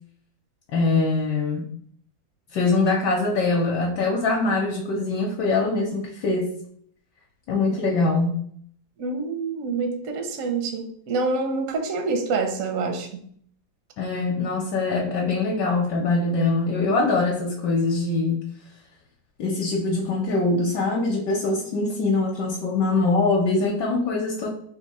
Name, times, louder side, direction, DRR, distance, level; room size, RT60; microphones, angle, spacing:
voice 1, 0.7-1.7 2.5-6.5 7.5-8.4 14.0-18.4 19.4-24.5, left 3 dB, 70° left, -1 dB, 1.2 m, -23 dB
voice 2, 9.0-13.2, right 4 dB, 70° right, 4 dB, 0.8 m, -27 dB
3.5 x 2.8 x 4.0 m, 0.63 s
omnidirectional pair, 2.0 m